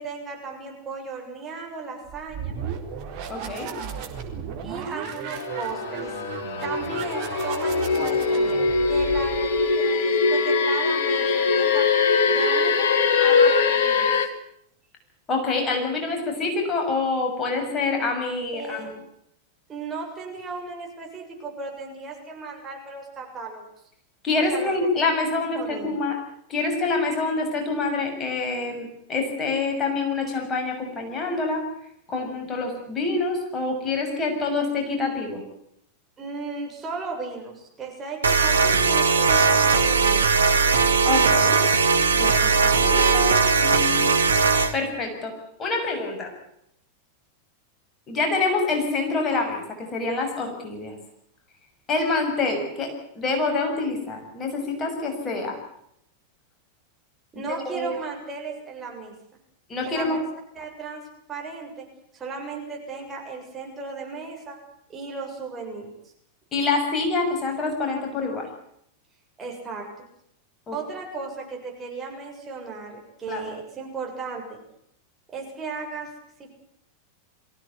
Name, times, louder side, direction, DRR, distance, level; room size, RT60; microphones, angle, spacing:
voice 1, 0.0-2.5 4.6-8.4 8.9-11.9 12.3-12.9 13.2-14.3 18.5-18.9 19.7-23.7 24.3-24.7 25.5-26.0 36.2-40.4 57.3-59.1 59.8-60.2 60.5-61.0 61.3-61.9 62.1-64.6 64.9-65.9 69.4-69.9 70.7-74.6 75.3-76.1 76.4-76.5, right 4 dB, 20° right, 1 dB, 7.2 m, -36 dB
sound 1, 2.1-9.7, right 7 dB, 45° right, 4.1 m, -35 dB
voice 2, 3.3-3.7 15.3-18.9 24.2-26.2 26.5-31.6 32.1-35.4 41.0-41.6 42.1-44.2 44.7-45.3 45.6-46.3 48.1-51.0 51.9-52.9 53.1-55.6 57.5-57.9 59.7-60.2 66.5-68.5 70.7-70.8 73.3-73.4, left 3 dB, 25° left, 2 dB, 6.7 m, -26 dB
sound 2, 5.3-14.3, left 4 dB, 55° left, 2.4 m, -22 dB
sound 3, 38.2-44.7, right 5 dB, 70° right, 1.8 m, -19 dB
23.5 x 16.5 x 9.8 m, 0.73 s
figure-of-eight pair, 90°, 0 cm